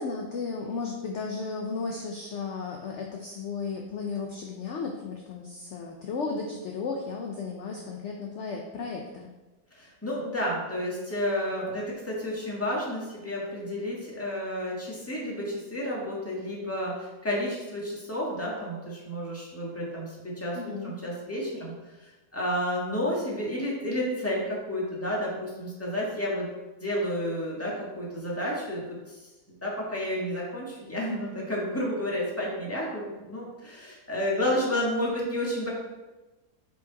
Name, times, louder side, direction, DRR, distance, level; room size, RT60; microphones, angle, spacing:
voice 1, 0.0-9.3 20.6-20.9, left 4 dB, 60° left, 1 dB, 0.8 m, -34 dB
voice 2, 9.7-20.6 20.8-21.7 22.3-26.5 26.8-29.1 29.6-35.7, left 1 dB, 10° left, -4 dB, 1.4 m, -31 dB
5.4 x 5.0 x 3.9 m, 1.1 s
omnidirectional pair, 1.8 m